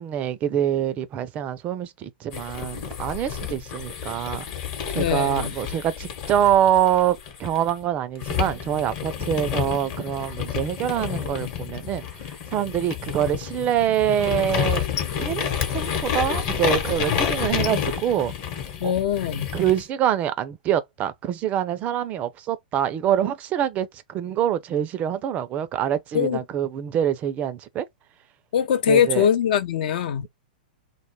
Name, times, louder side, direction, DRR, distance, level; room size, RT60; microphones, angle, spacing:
voice 1, 0.0-4.4 4.9-14.8 15.2-18.3 18.8-18.9 19.5-27.9 28.9-29.3, right 10 dB, 30° right, 0.3 m, -25 dB
sound 1, 2.3-7.7 8.2-19.8, left 8 dB, 45° left, 0.9 m, -29 dB
voice 2, 5.0-5.5 18.8-19.5 26.1-26.4 28.5-30.3, left 9 dB, 60° left, 0.4 m, -22 dB
2.2 x 2.1 x 3.0 m
hypercardioid pair, 120°, 5 cm